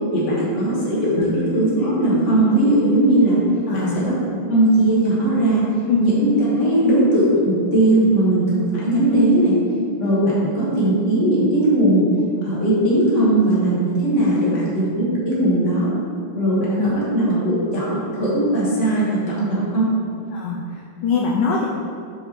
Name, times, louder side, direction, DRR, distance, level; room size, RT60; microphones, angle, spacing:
voice 1, 0.1-3.4 3.7-4.1 4.5-5.7 6.0-9.5 10.0-12.0 12.4-15.9 16.3-19.9, right 1 dB, 35° left, -7 dB, 1.8 m, -18 dB
voice 2, 3.7-4.0 5.9-6.0 16.8-16.9 20.3-21.7, left 5 dB, 75° left, -2 dB, 1.0 m, -22 dB
7.3 x 4.9 x 3.1 m, 2.3 s
omnidirectional pair, 2.4 m